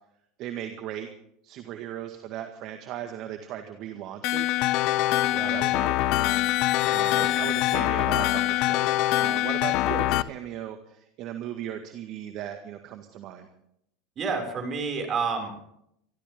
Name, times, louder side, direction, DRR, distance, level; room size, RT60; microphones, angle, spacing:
voice 1, 0.4-1.1 1.4-4.5 5.5-6.3 6.6-13.5, right 11 dB, 55° right, 6 dB, 1.8 m, -37 dB
sound 1, 4.2-10.2, left 16 dB, 60° left, 0.7 m, -24 dB
voice 2, 7.2-7.5 9.9-10.0 14.2-15.6, right 5 dB, 35° right, 4 dB, 6.1 m, -30 dB
26.0 x 13.5 x 3.8 m, 0.73 s
hypercardioid pair, 90°, 0 cm